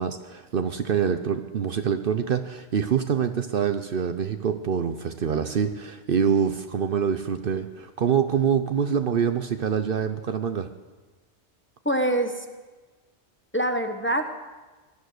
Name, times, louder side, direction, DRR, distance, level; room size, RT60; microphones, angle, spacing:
voice 1, 0.0-10.7, right 7 dB, 55° right, 9 dB, 0.9 m, -25 dB
voice 2, 11.8-12.4 13.5-14.2, right 1 dB, 10° left, 5 dB, 1.0 m, -24 dB
18.0 x 12.0 x 6.6 m, 1.3 s
omnidirectional pair, 1.2 m